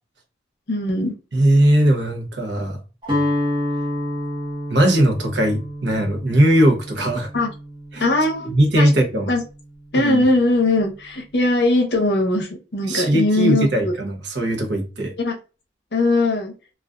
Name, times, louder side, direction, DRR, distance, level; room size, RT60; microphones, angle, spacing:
voice 1, 0.7-1.1 7.3-7.5 8.0-8.9 9.3-9.4 9.9-13.9 15.2-15.3 15.9-16.5, left 2 dB, 60° left, 0.6 m, -20 dB
voice 2, 1.3-2.8 4.7-7.3 7.9-8.0 8.5-9.3 9.9-10.2 12.9-15.1, right 1 dB, 70° right, 0.7 m, -19 dB
Guitar, 3.0-9.1, left 1 dB, 25° right, 0.9 m, -28 dB
2.4 x 2.3 x 2.2 m
head